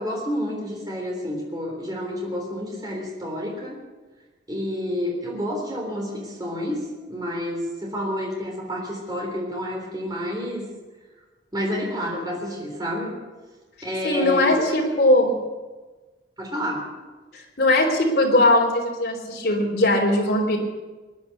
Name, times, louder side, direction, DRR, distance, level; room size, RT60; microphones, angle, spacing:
voice 1, 0.0-3.8 4.5-10.7 11.5-13.2 13.8-14.7 16.4-16.8, equal, 20° right, -1 dB, 3.7 m, -29 dB
voice 2, 14.0-15.3 17.3-20.6, left 1 dB, 60° left, 0 dB, 3.6 m, -20 dB
20.5 x 10.5 x 6.7 m, 1.3 s
head